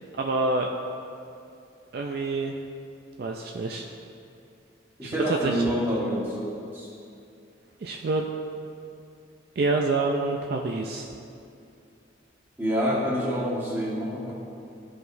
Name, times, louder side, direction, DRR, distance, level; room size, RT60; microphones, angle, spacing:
voice 1, 0.1-0.7 1.9-2.6 3.2-3.9 5.0-5.6 7.8-8.3 9.6-11.1, right 3 dB, 50° right, 2 dB, 0.4 m, -27 dB
voice 2, 5.0-6.9 12.6-14.3, equal, 10° right, -7 dB, 1.4 m, -27 dB
13.0 x 4.8 x 2.6 m, 2.5 s
head